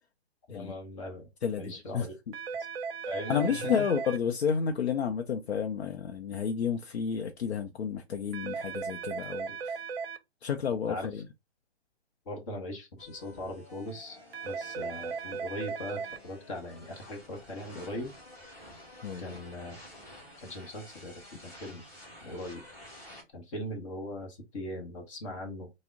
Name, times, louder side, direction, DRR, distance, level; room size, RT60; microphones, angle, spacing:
voice 1, 0.5-1.3 1.6-2.1 3.1-3.7 9.5-9.6 10.9-11.1 12.3-14.2 14.4-18.1 19.2-19.8 20.4-21.1 21.4-21.8 22.2-22.6 23.3-25.7, left 1 dB, 30° left, 0.8 m, -40 dB
voice 2, 1.4-2.1 3.3-9.9 10.4-11.2 19.0-19.3, left 7 dB, 80° left, 0.6 m, -31 dB
sound 1, 2.3-4.2 8.3-10.2 14.3-16.2, right 5 dB, 65° right, 0.6 m, -36 dB
sound 2, 13.0-23.2, left 1 dB, 10° left, 1.0 m, -51 dB
3.5 x 2.1 x 3.5 m
hypercardioid pair, 140°, 32 cm